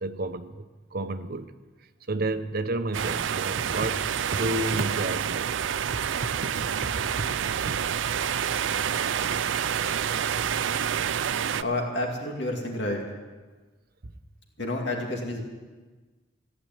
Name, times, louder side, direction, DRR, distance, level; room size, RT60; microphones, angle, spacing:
voice 1, 0.0-1.5 2.1-5.4 5.9-6.9 7.6-7.7 14.0-14.1, right 2 dB, 50° right, 10 dB, 0.8 m, -31 dB
sound 1, 2.9-11.6, right 8 dB, 75° right, 0.4 m, -28 dB
voice 2, 11.6-13.0 14.6-15.4, left 1 dB, 65° left, 1 dB, 2.4 m, -29 dB
15.0 x 9.9 x 9.1 m, 1.3 s
head